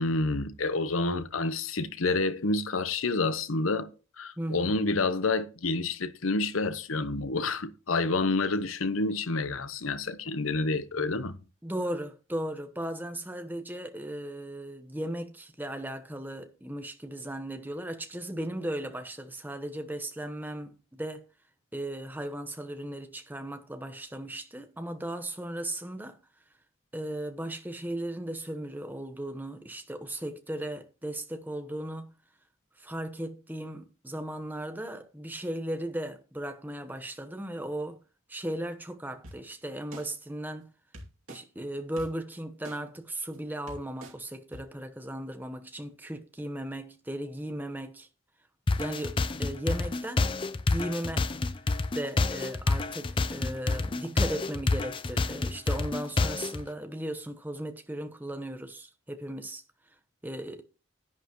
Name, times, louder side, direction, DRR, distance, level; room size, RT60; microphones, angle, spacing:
voice 1, 0.0-3.9 4.2-11.3, left 3 dB, 80° left, 0.9 m, -28 dB
voice 2, 4.4-4.8 11.6-21.2 21.7-26.2 26.9-32.1 32.8-38.0 38.3-40.7 41.3-48.1 48.7-50.4 50.7-51.3 51.9-59.6 60.2-60.6, right 1 dB, 10° right, 1.0 m, -36 dB
sound 1, 39.2-39.4 39.9-40.0 40.9-41.4 42.0-42.1 42.6-42.8 43.3-43.4 43.7-44.1 44.5-44.6, right 1 dB, 85° right, 2.5 m, -44 dB
sound 2, 48.7-56.6, left 3 dB, 25° left, 0.4 m, -28 dB
10.5 x 10.0 x 3.0 m
head